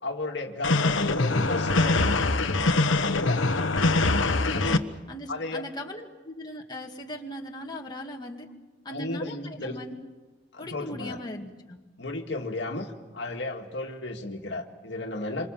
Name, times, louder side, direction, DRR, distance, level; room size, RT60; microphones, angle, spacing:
voice 1, 0.0-2.3 3.1-3.5 4.5-4.8 5.3-5.6 8.9-9.8 10.5-11.2 12.0-15.5, left 2 dB, 65° left, 3 dB, 2.1 m, -34 dB
sound 1, 0.6-4.8, left 2 dB, 80° left, 1.2 m, -23 dB
voice 2, 4.4-8.5 8.8-10.0 10.6-11.8, left 1 dB, 20° left, 0 dB, 2.3 m, -39 dB
28.0 x 25.5 x 7.4 m, 1.2 s
head